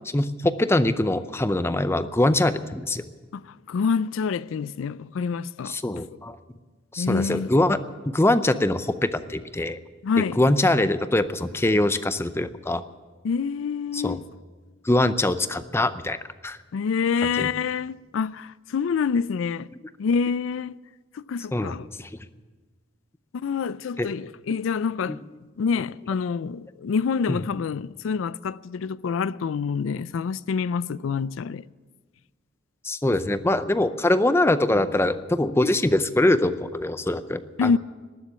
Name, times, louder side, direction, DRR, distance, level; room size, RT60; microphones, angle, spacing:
voice 1, 0.1-3.0 5.7-6.4 6.9-7.8 8.1-9.8 10.2-12.8 13.9-14.2 14.8-16.2 16.4-16.6 17.4-17.5 21.5-22.1 24.0-24.1 25.1-25.2 27.3-27.4 32.8-37.8, left 1 dB, 15° left, 0.5 m, -23 dB
voice 2, 3.3-5.8 7.0-7.5 10.0-10.4 13.2-14.2 16.7-19.7 20.0-20.7 21.1-21.9 23.3-25.2 25.6-31.6 37.6-37.8, left 5 dB, 85° left, 0.4 m, -27 dB
19.5 x 7.4 x 9.6 m
head